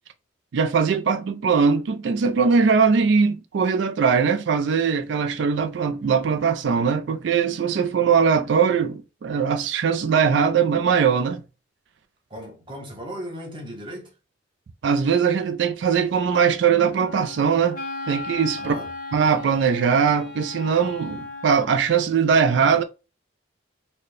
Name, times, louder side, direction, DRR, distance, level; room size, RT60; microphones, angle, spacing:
voice 1, 0.5-11.4 14.8-17.8 18.1-18.7 19.1-22.8, right 6 dB, 60° right, 0.3 m, -21 dB
voice 2, 12.3-14.1 18.6-18.9, equal, 25° right, 0.9 m, -36 dB
Wind instrument woodwind instrument, 17.0-21.8, left 3 dB, 40° left, 0.6 m, -36 dB
4.1 x 2.1 x 3.2 m
head